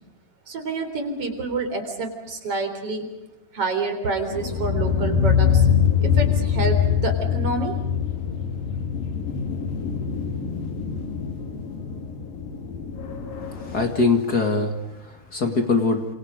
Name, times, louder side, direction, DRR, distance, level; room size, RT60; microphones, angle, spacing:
voice 1, 0.5-3.1 3.5-5.7 6.0-7.8, right 3 dB, 35° right, 5 dB, 4.4 m, -28 dB
sound 1, 4.3-13.9, left 7 dB, 60° left, 4.6 m, -24 dB
voice 2, 13.4-16.1, left 4 dB, 35° left, 5 dB, 1.7 m, -23 dB
29.5 x 27.5 x 5.2 m, 0.98 s
omnidirectional pair, 4.7 m